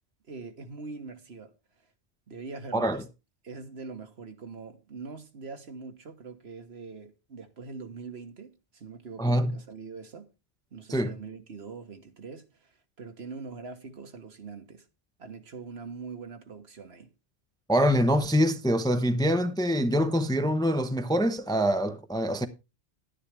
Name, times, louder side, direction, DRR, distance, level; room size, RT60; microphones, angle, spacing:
voice 1, 0.2-1.5 2.3-3.0 3.4-10.3 10.7-14.9 15.2-17.1, right 4 dB, 65° right, 1.6 m, -43 dB
voice 2, 2.7-3.0 9.2-9.5 10.9-11.1 17.7-22.5, equal, 5° left, 0.7 m, -25 dB
11.0 x 9.9 x 3.4 m
omnidirectional pair, 1.1 m